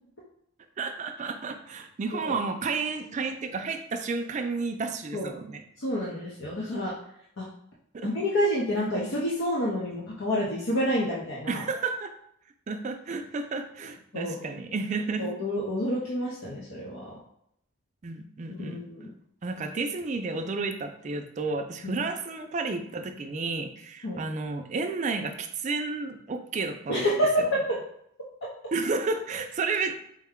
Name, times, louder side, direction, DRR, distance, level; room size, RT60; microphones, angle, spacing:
voice 1, 0.8-5.6 7.9-8.1 11.5-12.1 12.7-15.3 18.0-18.8 19.4-27.1 27.4-27.5 28.7-30.0, right 4 dB, 35° right, 6 dB, 0.4 m, -31 dB
voice 2, 5.8-6.9 7.4-7.5 8.0-11.6 14.1-14.4 15.2-17.1 18.5-19.1 21.8-22.0 24.0-24.2 26.9-27.8, equal, 80° left, -5 dB, 0.8 m, -28 dB
4.6 x 2.2 x 3.6 m, 0.73 s
head